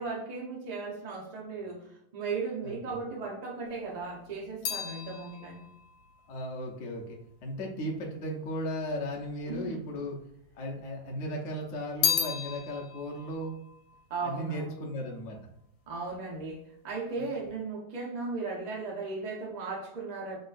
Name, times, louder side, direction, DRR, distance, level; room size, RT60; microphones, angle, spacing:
voice 1, 0.0-5.6 9.5-9.8 14.1-14.8 15.9-20.4, right 4 dB, 85° right, -1 dB, 0.3 m, -36 dB
voice 2, 2.6-3.0 6.3-10.2 10.5-13.5 14.2-15.4 17.2-17.3, equal, 55° left, -1 dB, 0.8 m, -36 dB
sound 1, 3.7-8.1 8.9-9.7 10.0-11.1 11.4-15.0 15.2-15.8, left 7 dB, 75° left, 1.4 m, -35 dB
5.3 x 2.3 x 2.5 m, 0.77 s
omnidirectional pair, 2.1 m